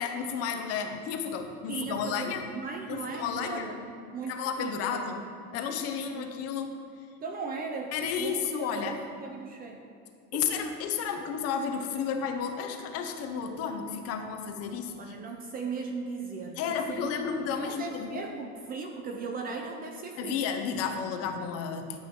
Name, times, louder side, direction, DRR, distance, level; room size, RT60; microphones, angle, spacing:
voice 1, 0.0-2.4 2.9-3.8 4.3-5.2 5.5-6.7 7.9-8.9 10.3-15.2 16.6-18.2 20.2-22.0, left 7 dB, 40° left, 6 dB, 0.8 m, -32 dB
voice 2, 1.7-3.8 4.1-5.1 6.2-6.3 7.2-9.8 10.3-10.4 15.0-20.4, right 4 dB, 25° right, 4 dB, 0.5 m, -38 dB
12.5 x 7.8 x 3.7 m, 2.5 s
cardioid pair, 170°, 38 cm